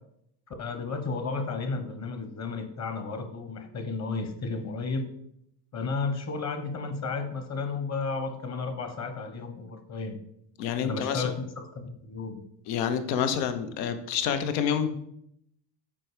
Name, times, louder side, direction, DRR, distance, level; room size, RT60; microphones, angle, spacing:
voice 1, 0.6-5.1 5.7-10.2 10.8-11.3 11.7-12.4, left 4 dB, 35° left, 8 dB, 1.2 m, -33 dB
voice 2, 10.6-11.3 12.7-14.9, left 8 dB, 90° left, 9 dB, 1.0 m, -28 dB
7.6 x 4.8 x 5.0 m, 0.74 s
cardioid pair, 135°, 49 cm